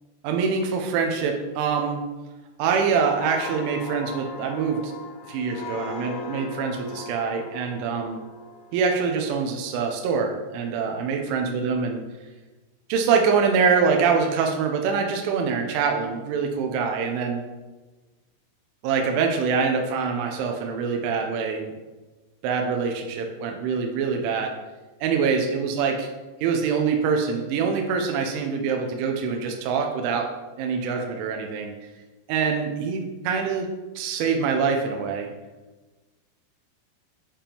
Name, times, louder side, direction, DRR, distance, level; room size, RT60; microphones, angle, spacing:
voice 1, 0.2-2.0 2.6-4.9 5.3-8.2 8.7-12.0 12.9-17.4 18.8-21.7 22.4-24.5 25.0-26.0 26.4-30.3 30.6-31.7 32.3-33.7 34.0-35.3, right 5 dB, 85° right, 2 dB, 3.1 m, -24 dB
sound 1, 2.8-10.3 10.7-10.9, left 3 dB, 80° left, 2.3 m, -39 dB
7.1 x 6.7 x 2.9 m, 1.2 s
omnidirectional pair, 5.6 m